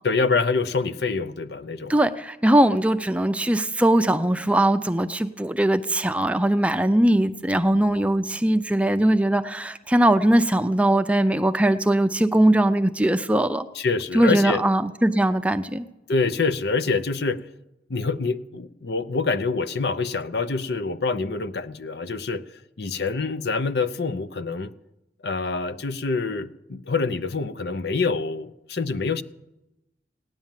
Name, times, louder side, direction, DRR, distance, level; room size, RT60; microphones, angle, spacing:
voice 1, 0.0-1.9 13.7-14.6 16.1-17.4 17.9-22.4 22.8-24.7 25.2-29.2, left 4 dB, 65° left, 13 dB, 0.7 m, -26 dB
voice 2, 1.9-13.7 14.1-15.8, right 1 dB, 5° right, 9 dB, 0.5 m, -20 dB
17.5 x 10.5 x 7.4 m, 0.91 s
head